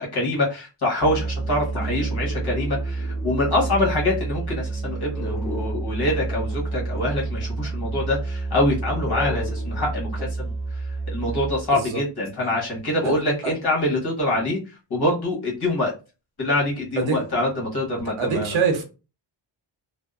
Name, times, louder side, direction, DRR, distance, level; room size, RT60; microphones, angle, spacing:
voice 1, 0.0-10.1 10.4-10.5 11.1-14.6 14.9-15.9 16.4-18.5, left 1 dB, 50° left, 1.2 m, -25 dB
Musical instrument, 1.0-11.8, right 3 dB, ahead, 0.7 m, -29 dB
voice 2, 11.7-12.0 13.0-13.2 13.4-13.5 17.0-17.2 18.0-18.8, right 5 dB, 80° right, 0.8 m, -24 dB
2.7 x 2.1 x 2.3 m
wide cardioid pair, 170°, 48 cm